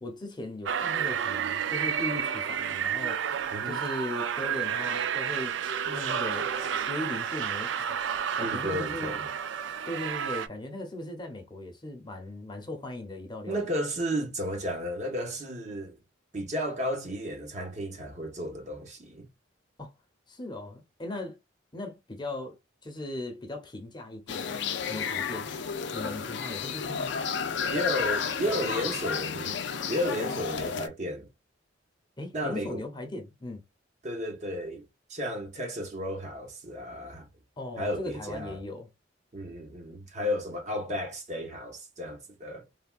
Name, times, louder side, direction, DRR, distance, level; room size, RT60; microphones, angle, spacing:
voice 1, 0.0-3.3 3.6-5.6 5.8-6.5 6.9-8.0 8.4-9.3 9.8-13.6 19.8-19.9 20.3-21.4 21.7-22.6 22.8-24.6 24.9-25.5 25.9-27.2 32.2-33.6 37.6-38.9, left 1 dB, 25° left, 0.7 m, -38 dB
sound 1, 0.6-10.5, right 8 dB, 70° right, 0.4 m, -31 dB
voice 2, 3.5-3.8 8.4-9.2 13.5-16.0 16.3-19.3 27.7-29.6 29.9-31.3 32.3-32.8 34.0-34.8 35.1-37.3 37.8-38.6 39.3-42.7, equal, 40° right, 0.8 m, -33 dB
sound 2, 24.3-30.9, left 6 dB, 65° left, 0.4 m, -32 dB
3.4 x 2.3 x 2.3 m
head